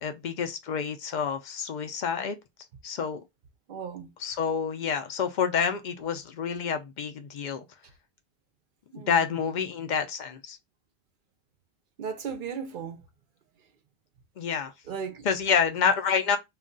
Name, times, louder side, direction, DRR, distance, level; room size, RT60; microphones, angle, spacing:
voice 1, 0.0-2.4 2.8-3.2 4.2-7.6 9.1-10.6 14.4-14.7 15.2-16.4, left 6 dB, 55° left, 0.5 m, -28 dB
voice 2, 3.7-4.1 8.9-9.2 12.0-13.0 14.9-15.2, right 6 dB, 55° right, 0.6 m, -36 dB
2.3 x 2.2 x 3.7 m
omnidirectional pair, 1.1 m